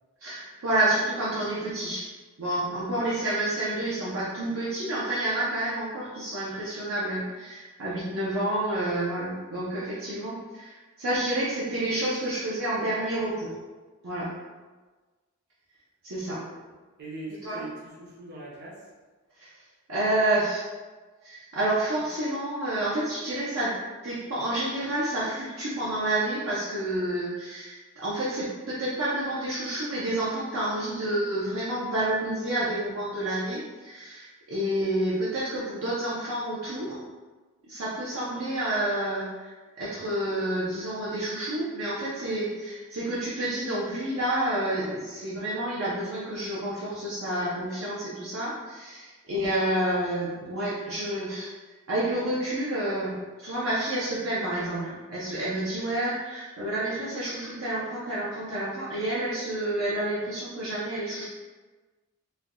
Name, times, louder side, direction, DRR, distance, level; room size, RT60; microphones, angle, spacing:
voice 1, 0.2-2.1 2.4-13.6 14.0-14.3 16.0-16.4 17.4-17.6 19.4-19.5 19.9-20.7 21.2-23.7 24.0-37.0 37.7-51.5 51.9-61.2, right 1 dB, 70° right, -8 dB, 0.6 m, -29 dB
voice 2, 17.0-18.8, right 2 dB, 50° right, -5 dB, 0.9 m, -41 dB
4.3 x 2.2 x 2.5 m, 1.3 s
head